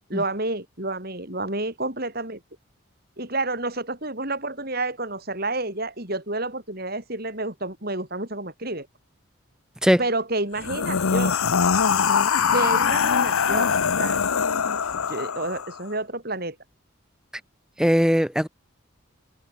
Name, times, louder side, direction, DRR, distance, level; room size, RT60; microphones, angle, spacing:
voice 1, 0.1-2.4 3.2-8.9 10.0-11.4 12.5-13.7 14.0-14.2 15.1-16.6, right 2 dB, 45° right, 6.9 m, -29 dB
sound 1, 10.6-15.8, left 6 dB, 85° left, 0.8 m, -22 dB
voice 2, 17.8-18.5, equal, 5° right, 2.3 m, -19 dB
head